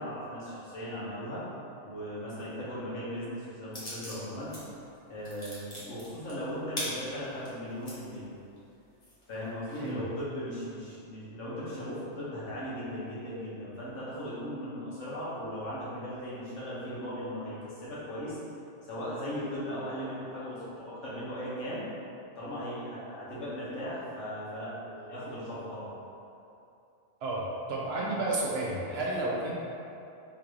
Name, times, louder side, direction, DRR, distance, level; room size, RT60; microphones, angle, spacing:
voice 1, 0.0-1.4 1.8-4.5 5.1-8.3 9.3-18.4 18.8-21.8 22.4-25.9, equal, 85° left, -9 dB, 1.5 m, -38 dB
sound 1, 3.7-4.6 4.9-8.0 8.5-8.6 9.0-9.9, left 1 dB, 35° left, 1.1 m, -40 dB
voice 2, 27.2-29.5, right 2 dB, 65° right, -4 dB, 0.9 m, -31 dB
3.7 x 2.6 x 4.6 m, 2.7 s
omnidirectional pair, 1.2 m